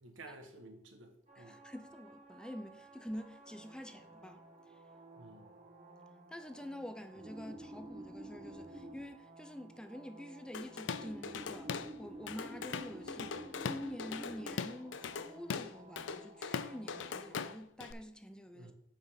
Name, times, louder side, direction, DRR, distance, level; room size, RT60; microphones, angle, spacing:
voice 1, 0.0-1.6 5.2-5.5 18.5-18.7, right 2 dB, 85° right, 1.4 m, -53 dB
sound 1, 1.3-17.5, right 1 dB, 35° right, 1.4 m, -52 dB
voice 2, 1.4-4.8 6.3-18.7, equal, 5° left, 0.5 m, -47 dB
Drum kit / Drum, 10.5-11.9 12.3-17.9, left 6 dB, 70° left, 0.4 m, -40 dB
7.2 x 5.0 x 5.6 m
head